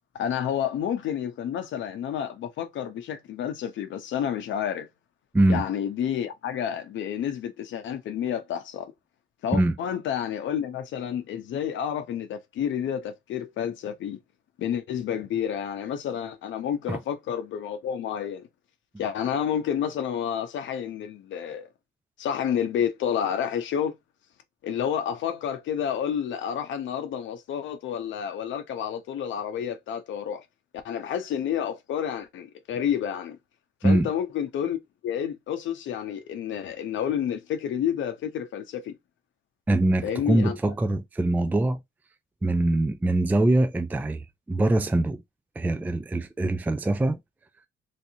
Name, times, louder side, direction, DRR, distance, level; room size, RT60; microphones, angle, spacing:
voice 1, 0.1-4.9 5.5-8.9 9.4-14.2 14.6-18.5 19.0-21.7 22.2-23.9 24.6-30.4 30.8-33.4 33.8-34.8 35.0-39.0 40.0-40.7, left 9 dB, 75° left, 0.7 m, -30 dB
voice 2, 39.7-41.8 42.4-45.2 45.6-47.2, right 1 dB, 10° right, 0.3 m, -23 dB
3.3 x 2.7 x 2.7 m
cardioid pair, 90°, 20 cm